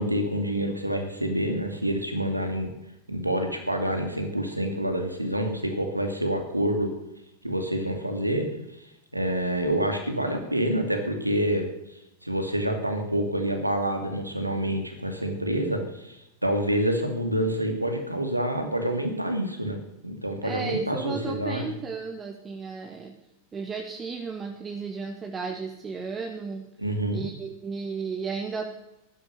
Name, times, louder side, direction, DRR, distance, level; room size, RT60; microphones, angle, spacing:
voice 1, 0.0-2.7 3.1-6.9 7.4-8.5 9.1-11.7 12.2-19.8 20.0-21.7 26.8-27.2, right 1 dB, 85° right, 5 dB, 2.6 m, -27 dB
voice 2, 20.4-23.2 23.5-26.7 27.1-28.7, right 5 dB, 20° right, 3 dB, 1.5 m, -34 dB
14.0 x 11.5 x 6.6 m, 0.88 s
figure-of-eight pair, 90°, 0 cm